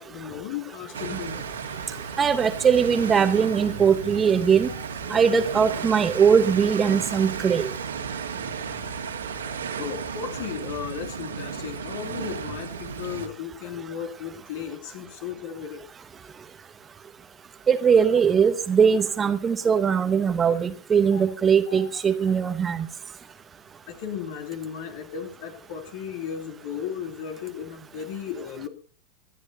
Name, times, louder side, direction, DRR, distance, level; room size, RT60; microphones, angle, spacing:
voice 1, 0.0-1.6 4.7-4.8 9.8-15.8 21.1-21.2 21.7-21.8 23.9-28.7, left 8 dB, 50° left, 6 dB, 2.6 m, -35 dB
sound 1, 0.9-13.3, right 6 dB, 70° right, 2.1 m, -34 dB
voice 2, 2.2-4.7 5.1-7.7 17.7-22.9, right 6 dB, 20° right, 11 dB, 0.9 m, -20 dB
25.0 x 10.5 x 2.7 m, 0.38 s
figure-of-eight pair, 90°, 0 cm